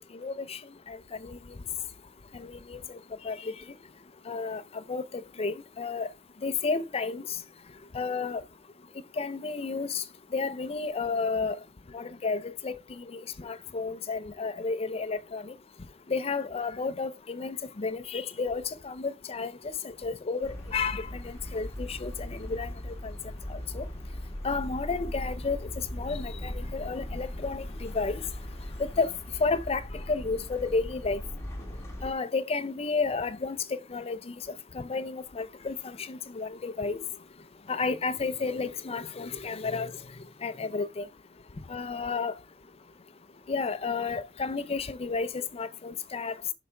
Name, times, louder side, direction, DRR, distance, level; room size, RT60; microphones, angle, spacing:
voice 1, 0.1-0.6 0.9-1.0 1.2-1.4 2.4-2.8 3.2-3.5 4.3-4.6 4.9-6.1 6.4-7.2 7.9-8.4 9.2-10.0 10.3-11.6 11.9-15.5 16.1-19.5 19.8-23.1 23.5-23.9 24.4-28.3 29.0-29.1 29.4-29.8 30.1-31.2 32.0-34.3 34.7-37.0 37.7-39.9 40.4-41.1 41.7-42.3 43.5-46.3, left 4 dB, 30° left, 0.5 m, -32 dB
sound 1, 20.4-32.1, left 1 dB, 15° left, 1.8 m, -39 dB
8.0 x 5.6 x 3.4 m
head